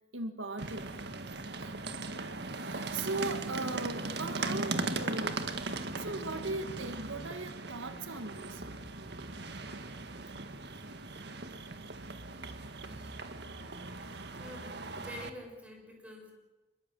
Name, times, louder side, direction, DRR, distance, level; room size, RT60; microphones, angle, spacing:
voice 1, 0.1-0.9 1.6-1.8 2.6-5.4 6.0-8.6, right 2 dB, 85° right, 8 dB, 2.0 m, -38 dB
sound 1, 0.6-15.3, right 3 dB, 55° right, 1.8 m, -39 dB
voice 2, 14.4-16.3, left 1 dB, 5° right, 1 dB, 6.7 m, -47 dB
27.5 x 22.0 x 7.8 m, 1.1 s
head